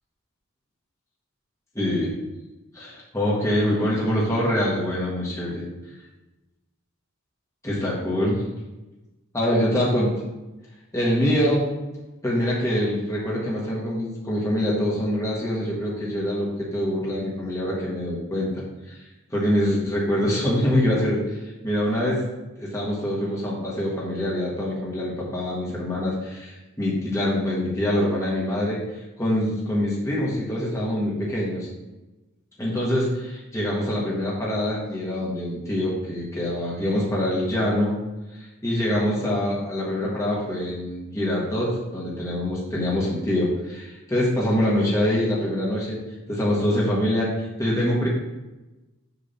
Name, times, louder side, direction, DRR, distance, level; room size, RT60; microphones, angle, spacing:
voice 1, 1.7-2.1 2.7-5.7 7.6-8.4 9.3-10.1 10.9-11.7 12.2-19.0 19.3-21.4 21.6-22.2 22.6-28.8 29.2-31.7 32.6-37.9 38.4-46.0 46.3-48.1, left 1 dB, 15° left, -6 dB, 1.5 m, -24 dB
6.9 x 3.7 x 5.5 m, 1.1 s
head